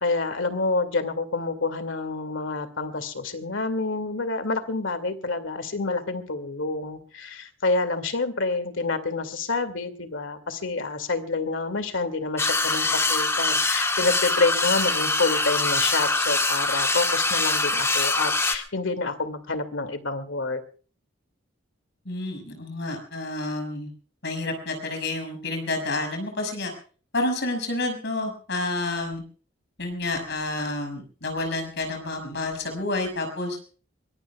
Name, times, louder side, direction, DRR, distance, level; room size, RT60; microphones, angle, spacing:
voice 1, 0.0-20.6, left 3 dB, 80° left, 11 dB, 2.3 m, -28 dB
sound 1, 12.4-18.6, left 3 dB, 15° left, 1.8 m, -23 dB
voice 2, 22.0-23.9 24.2-26.7 27.1-29.2 29.8-33.6, left 2 dB, 60° left, 4 dB, 5.9 m, -29 dB
23.0 x 22.5 x 2.3 m, 0.40 s
head